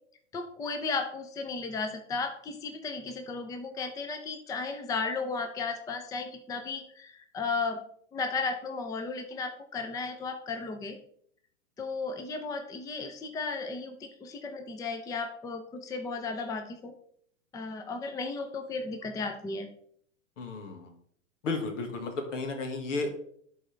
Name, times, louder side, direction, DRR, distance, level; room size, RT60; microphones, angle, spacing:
voice 1, 0.3-7.8 8.1-11.0 11.8-16.9 17.5-19.7, left 4 dB, 10° left, 6 dB, 0.5 m, -35 dB
voice 2, 20.4-20.9 21.4-23.1, left 3 dB, 75° left, 5 dB, 1.7 m, -33 dB
11.0 x 4.0 x 3.3 m, 0.63 s
hypercardioid pair, 110°, 38 cm